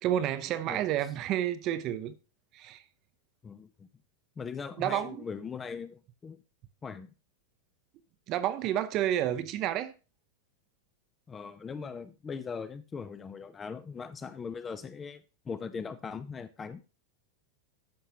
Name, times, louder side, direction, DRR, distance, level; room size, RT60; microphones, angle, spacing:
voice 1, 0.0-2.1 2.5-2.8 4.8-5.3 8.3-9.9, right 11 dB, 35° right, 0.6 m, -30 dB
voice 2, 3.4-3.9 4.4-6.4 6.8-7.1 11.3-16.8, left 5 dB, 20° left, 0.5 m, -40 dB
13.0 x 5.6 x 2.9 m
figure-of-eight pair, 90°, 0 cm